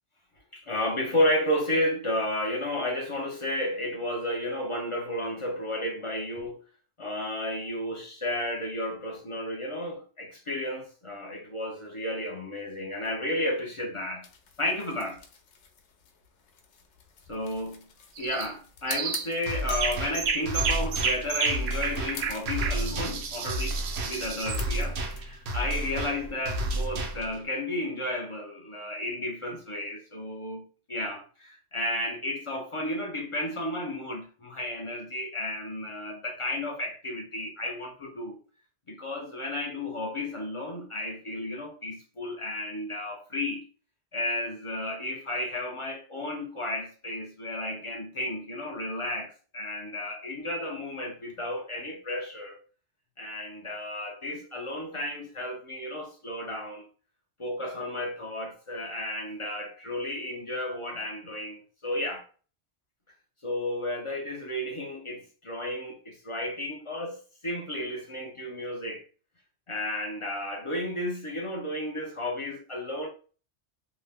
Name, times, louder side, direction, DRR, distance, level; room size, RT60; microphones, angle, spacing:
voice 1, 0.5-6.6 7.0-14.3 14.6-15.2 17.3-17.9 18.2-38.4 38.9-43.7 44.1-52.6 53.2-56.8 57.4-62.3 63.4-69.0 69.7-73.1, left 1 dB, 40° left, 0.5 m, -32 dB
sound 1, 14.2-25.2, left 5 dB, 75° left, 0.9 m, -47 dB
sound 2, 18.2-18.5 18.9-19.3 19.7-24.6, right 5 dB, 65° right, 0.7 m, -31 dB
sound 3, 19.5-27.4, right 1 dB, 90° right, 1.0 m, -32 dB
2.8 x 2.1 x 3.3 m
omnidirectional pair, 1.2 m